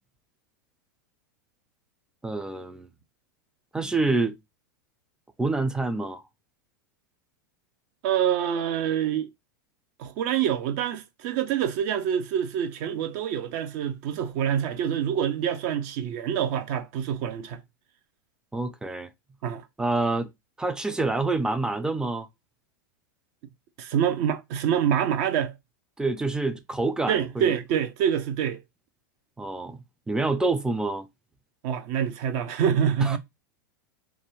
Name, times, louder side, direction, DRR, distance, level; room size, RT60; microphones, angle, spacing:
voice 1, 2.2-2.9 3.7-4.3 5.4-6.2 18.5-19.1 19.8-20.3 20.6-22.3 26.0-27.5 29.4-31.1 33.0-33.2, right 3 dB, 5° right, 0.4 m, -27 dB
voice 2, 8.0-9.3 10.0-17.6 19.4-19.6 23.8-25.5 27.1-28.6 31.6-33.2, right 9 dB, 55° right, 0.7 m, -26 dB
2.6 x 2.3 x 3.1 m
hypercardioid pair, 105°, 11 cm